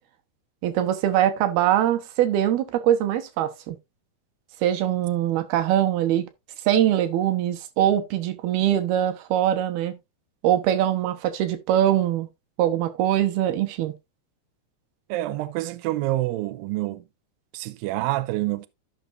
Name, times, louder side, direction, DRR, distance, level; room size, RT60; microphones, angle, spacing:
voice 1, 0.6-3.8 4.6-6.3 6.7-10.0 10.4-12.3 12.6-13.9, right 11 dB, 70° right, 2.8 m, -22 dB
voice 2, 15.1-17.0 17.5-18.7, right 17 dB, 90° right, 2.1 m, -27 dB
14.0 x 5.8 x 2.5 m
omnidirectional pair, 4.8 m